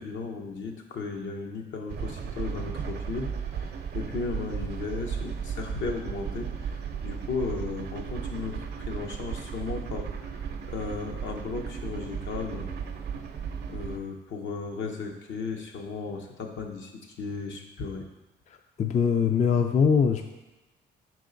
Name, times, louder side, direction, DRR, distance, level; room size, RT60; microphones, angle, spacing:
voice 1, 0.0-12.8 13.7-18.1, left 4 dB, 70° left, 2 dB, 1.0 m, -35 dB
sound 1, 1.9-14.0, right 7 dB, 55° right, 0.6 m, -35 dB
voice 2, 18.8-20.3, left 6 dB, 35° left, 5 dB, 0.4 m, -22 dB
5.6 x 4.6 x 3.9 m, 1.0 s
cardioid pair, 90°, 20 cm